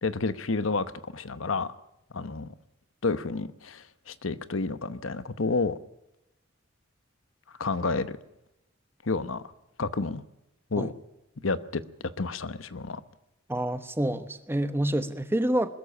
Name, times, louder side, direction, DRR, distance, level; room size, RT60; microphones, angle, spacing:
voice 1, 0.0-1.7 2.1-2.5 3.0-5.8 7.6-8.2 9.0-9.4 9.8-10.2 10.7-10.9 11.4-13.0, left 3 dB, 75° left, 14 dB, 1.0 m, -30 dB
voice 2, 13.5-15.7, right 1 dB, 10° right, 11 dB, 1.1 m, -27 dB
21.5 x 14.0 x 9.9 m, 0.88 s
head